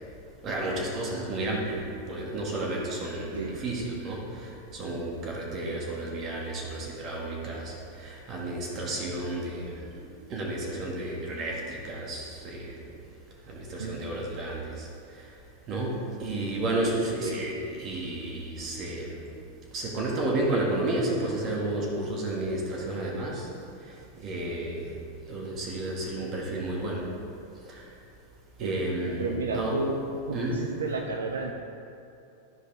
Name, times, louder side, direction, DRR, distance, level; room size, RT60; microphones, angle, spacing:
voice 1, 0.4-12.8 13.5-14.9 15.1-15.3 15.7-19.2 19.7-23.5 23.9-24.9 25.3-27.1 27.7-27.9 28.6-29.8 30.3-30.6, right 1 dB, 30° right, -2 dB, 2.0 m, -32 dB
voice 2, 29.2-29.9 30.3-31.5, right 3 dB, 70° right, 2 dB, 0.6 m, -32 dB
13.5 x 5.2 x 3.5 m, 2.7 s
figure-of-eight pair, 90°, 0 cm